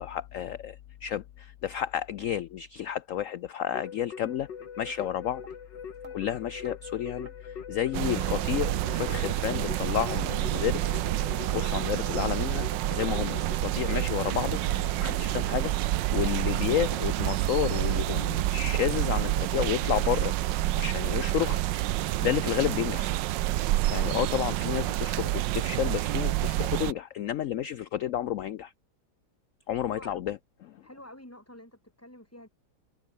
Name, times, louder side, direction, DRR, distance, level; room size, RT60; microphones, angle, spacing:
voice 1, 0.0-4.5 4.8-5.4 6.1-10.9 11.5-14.6 15.0-20.3 20.7-21.6 22.2-23.1 23.9-28.7 29.7-30.8, left 11 dB, 85° left, 0.7 m, -31 dB
Keyboard (musical), 3.7-16.2, left 7 dB, 70° left, 2.5 m, -43 dB
sound 1, 4.2-4.4 4.8-5.0 5.4-5.5 6.0-6.2 6.6-6.8 7.2-7.4 7.9-8.0 8.5-8.6 9.1-9.2 9.7-9.8 10.3-10.4 10.9-11.0 11.5-11.7 12.1-12.2 12.7-12.8 13.3-13.4 13.9-14.0 14.5-14.6 15.1-15.2 15.7-15.8 16.3-16.4 16.9-17.0, right 2 dB, 35° right, 5.4 m, -50 dB
sound 2, 7.9-26.9, right 15 dB, 75° right, 1.3 m, -28 dB
voice 2, 29.9-30.2 30.8-32.5, left 1 dB, 5° left, 5.4 m, -48 dB
omnidirectional pair, 2.0 m